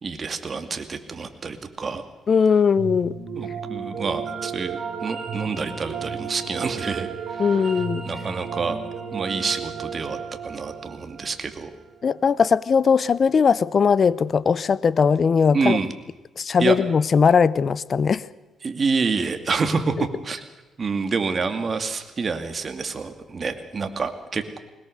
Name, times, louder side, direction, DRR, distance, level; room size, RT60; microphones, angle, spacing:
voice 1, 0.0-2.1 3.3-7.6 8.0-8.8 9.1-11.7 15.5-15.9 16.6-16.8 18.6-20.4 20.8-24.6, right 4 dB, 40° right, 7 dB, 2.3 m, -27 dB
voice 2, 2.3-3.1 7.4-8.0 12.0-15.8 16.4-18.2, left 6 dB, 45° left, 19 dB, 0.7 m, -19 dB
sound 1, 2.8-11.9, right 6 dB, 65° right, 5.3 m, -33 dB
21.5 x 20.0 x 6.6 m, 1.1 s
cardioid pair, 90°, 0 cm